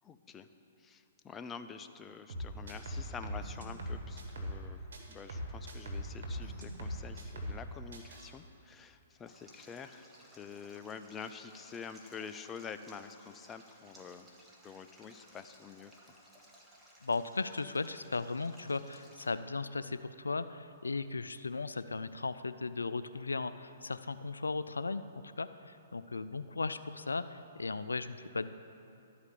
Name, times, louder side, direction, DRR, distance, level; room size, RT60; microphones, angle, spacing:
voice 1, 0.0-0.5 0.8-15.9, left 6 dB, 20° left, 9 dB, 0.4 m, -47 dB
sound 1, 2.3-4.6 4.9-7.6 7.9-8.3, equal, 70° right, 1.7 m, -40 dB
Stream, 9.3-19.3, equal, 5° right, 1.4 m, -60 dB
voice 2, 17.0-28.5, left 3 dB, 90° left, 13 dB, 0.3 m, -36 dB
12.5 x 4.9 x 6.8 m, 2.6 s
hypercardioid pair, 125°, 0 cm